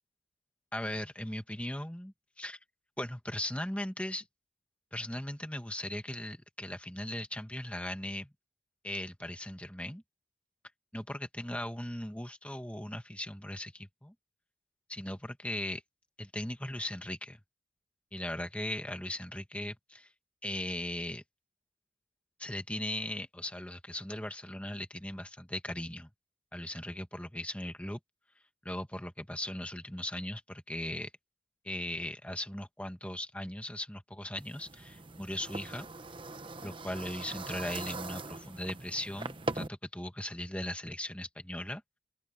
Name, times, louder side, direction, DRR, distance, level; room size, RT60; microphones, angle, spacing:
voice 1, 0.7-2.6 3.0-4.3 4.9-8.3 8.8-10.0 10.9-14.1 14.9-15.8 16.2-17.4 18.1-20.1 20.4-21.2 22.4-26.1 26.5-28.0 28.6-31.1 31.6-35.9 36.6-42.0, left 1 dB, 5° left, 1.9 m, -38 dB
sound 1, 34.4-39.7, right 3 dB, 25° right, 1.0 m, -41 dB
open air
head